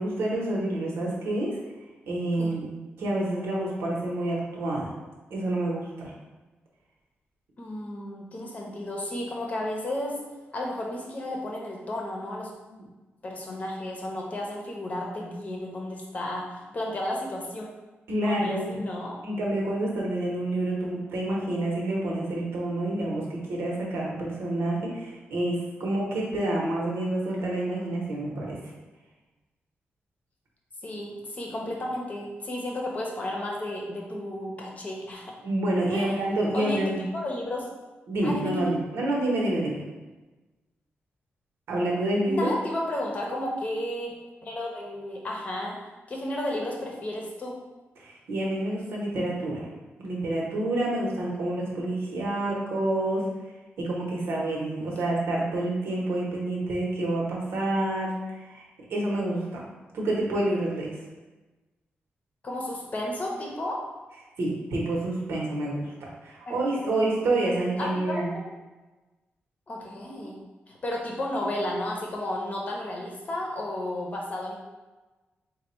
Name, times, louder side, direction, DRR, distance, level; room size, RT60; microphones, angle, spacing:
voice 1, 0.0-1.6 2.1-2.6 3.0-4.9 5.3-6.1 12.7-12.8 18.1-18.9 19.2-28.6 35.4-37.1 38.1-39.8 41.7-42.5 48.0-49.6 50.0-53.3 53.8-58.6 58.9-59.6 59.9-60.9 64.4-68.3, right 1 dB, 85° right, -3 dB, 1.0 m, -28 dB
voice 2, 7.6-10.2 10.5-12.5 13.2-17.7 18.2-19.2 30.8-35.3 35.9-36.2 36.5-37.7 38.2-38.7 42.3-44.1 44.5-45.8 46.1-47.6 62.4-63.8 66.5-67.3 67.8-68.5 69.7-70.4 70.7-74.5, left 1 dB, 35° left, -1 dB, 0.8 m, -33 dB
3.4 x 2.3 x 4.3 m, 1.2 s
wide cardioid pair, 120°, 4 cm